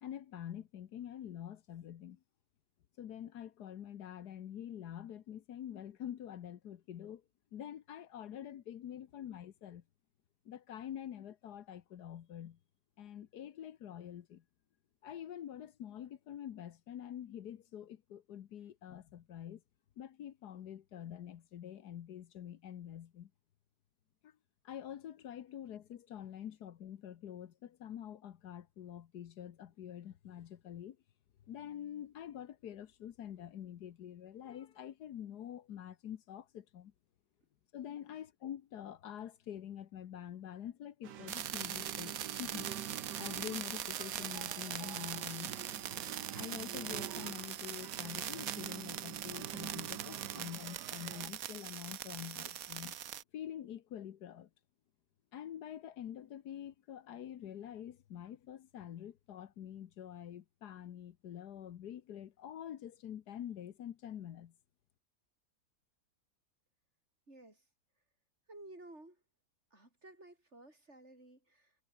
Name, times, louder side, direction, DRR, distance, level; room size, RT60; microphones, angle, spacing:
voice 1, 0.0-2.2 3.0-7.2 7.5-9.8 10.4-12.6 13.0-14.4 15.0-19.6 20.0-23.3 24.2-24.3 24.6-31.0 31.5-36.9 37.7-42.7 43.2-45.6 46.3-53.0 53.3-54.5 55.3-64.5, left 10 dB, 75° left, 1.5 m, -46 dB
sound 1, 41.0-51.3, right 10 dB, 90° right, 1.7 m, -47 dB
sound 2, 41.3-53.2, right 11 dB, 65° right, 1.2 m, -42 dB
voice 2, 67.3-67.6 68.5-69.2 69.7-71.8, right 2 dB, 40° right, 6.2 m, -55 dB
omnidirectional pair, 1.7 m